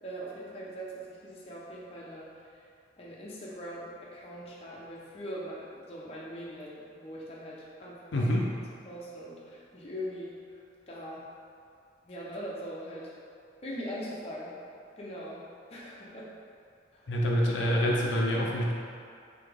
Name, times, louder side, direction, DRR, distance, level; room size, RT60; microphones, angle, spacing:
voice 1, 0.0-2.6 3.0-8.3 8.8-10.4 10.9-11.3 12.1-13.1 13.6-14.6 15.0-16.3 16.9-17.1, equal, 30° left, -6 dB, 0.7 m, -41 dB
voice 2, 8.1-8.6 17.1-18.7, equal, 75° left, -2 dB, 0.5 m, -26 dB
4.0 x 3.4 x 3.4 m, 2.4 s
head